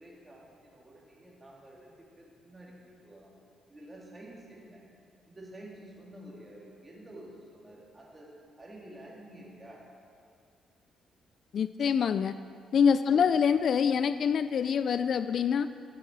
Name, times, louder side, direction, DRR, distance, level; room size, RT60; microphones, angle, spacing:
voice 1, 0.0-3.3 3.7-4.8 5.3-8.3 8.6-9.8 13.0-13.2, right 1 dB, 20° right, -4 dB, 3.1 m, -50 dB
voice 2, 11.5-12.3 12.7-15.7, left 7 dB, 60° left, 13 dB, 0.3 m, -25 dB
14.5 x 8.6 x 4.7 m, 2.3 s
cardioid pair, 90°, 0 cm